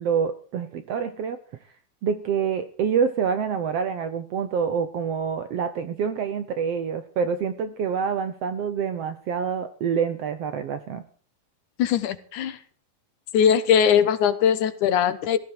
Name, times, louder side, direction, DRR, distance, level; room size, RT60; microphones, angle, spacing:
voice 1, 0.0-1.4 2.0-11.0, right 6 dB, 65° right, 10 dB, 1.6 m, -26 dB
voice 2, 11.8-12.6 13.3-15.4, left 8 dB, 70° left, 13 dB, 2.5 m, -20 dB
17.0 x 14.5 x 4.6 m, 0.44 s
omnidirectional pair, 3.8 m